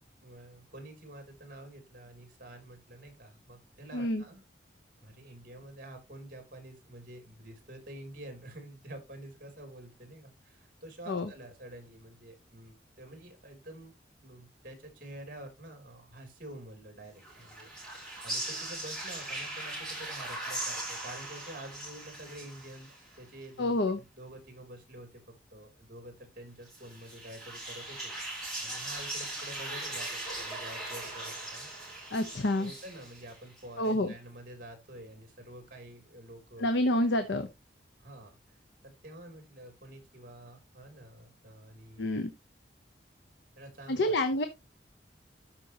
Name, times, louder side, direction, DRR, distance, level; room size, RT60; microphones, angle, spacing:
voice 1, 0.2-4.4 5.0-13.9 14.2-25.2 25.5-31.9 32.4-36.7 38.0-38.6 38.8-42.0 43.6-44.4, right 1 dB, 50° right, 6 dB, 3.3 m, -48 dB
voice 2, 3.9-4.2 11.1-11.3 23.6-24.0 32.1-32.7 33.8-34.1 36.6-37.5 42.0-42.3 43.9-44.5, left 1 dB, 80° left, 8 dB, 0.9 m, -28 dB
sound 1, 17.2-23.2 26.7-33.6, right 1 dB, 5° left, 4.2 m, -39 dB
13.0 x 5.3 x 2.9 m, 0.24 s
head